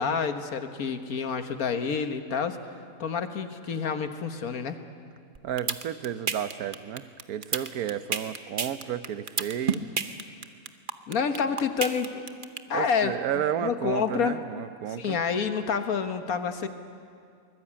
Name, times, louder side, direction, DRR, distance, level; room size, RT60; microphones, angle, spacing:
voice 1, 0.0-2.6 3.0-4.8 11.1-12.2 12.7-13.1 13.6-14.3 14.9-16.7, left 6 dB, 80° left, 8 dB, 1.7 m, -28 dB
sound 1, 5.4-12.6, right 6 dB, 40° right, 1.0 m, -29 dB
voice 2, 5.4-9.8 12.7-15.2, right 9 dB, 90° right, 13 dB, 1.3 m, -32 dB
23.5 x 21.0 x 8.6 m, 2.3 s
omnidirectional pair, 1.5 m